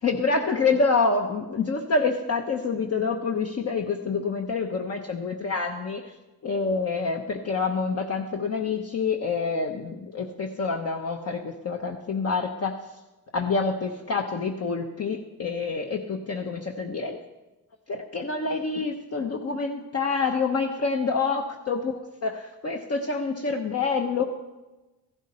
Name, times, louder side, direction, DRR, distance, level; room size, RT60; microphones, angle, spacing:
voice 1, 0.0-6.0 6.4-12.8 13.3-17.2 17.9-24.2, left 4 dB, 40° left, 2 dB, 1.0 m, -27 dB
15.0 x 12.0 x 4.3 m, 1.1 s
cardioid pair, 110°, 37 cm